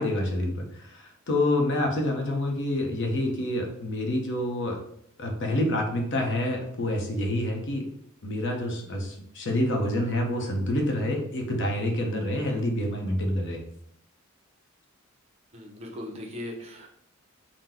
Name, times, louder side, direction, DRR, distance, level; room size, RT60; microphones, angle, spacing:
voice 1, 0.0-4.8 5.2-7.9 8.2-13.6, left 1 dB, 60° left, 2 dB, 0.8 m, -27 dB
voice 2, 15.5-16.9, left 1 dB, 30° right, 0 dB, 0.7 m, -38 dB
3.8 x 2.2 x 4.3 m, 0.70 s
head